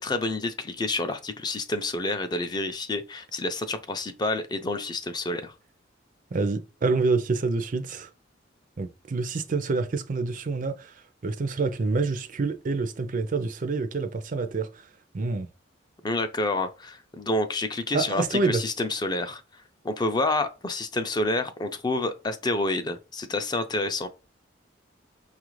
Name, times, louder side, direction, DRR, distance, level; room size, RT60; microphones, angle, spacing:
voice 1, 0.0-5.5 16.0-19.4 19.8-24.1, left 2 dB, 25° left, 0.4 m, -28 dB
voice 2, 6.3-8.1 8.8-14.9 15.1-15.5 17.9-18.6, right 3 dB, 45° right, 0.4 m, -27 dB
5.5 x 2.4 x 3.1 m
head